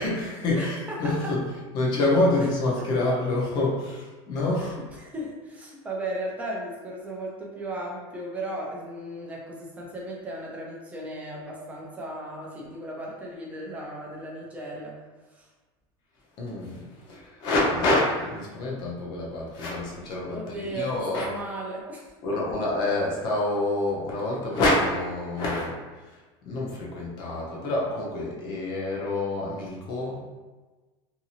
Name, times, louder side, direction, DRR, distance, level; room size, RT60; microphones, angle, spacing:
voice 1, 0.0-1.4 1.7-4.8 16.4-21.3 22.2-25.8 26.5-30.3, left 2 dB, 35° left, -3 dB, 0.7 m, -27 dB
voice 2, 0.5-1.4 2.4-2.5 2.8-2.9 4.6-15.0 15.3-15.5 20.3-22.1, right 1 dB, 10° right, -3 dB, 0.4 m, -36 dB
2.7 x 2.5 x 2.7 m, 1.2 s
supercardioid pair, 170°, 12 cm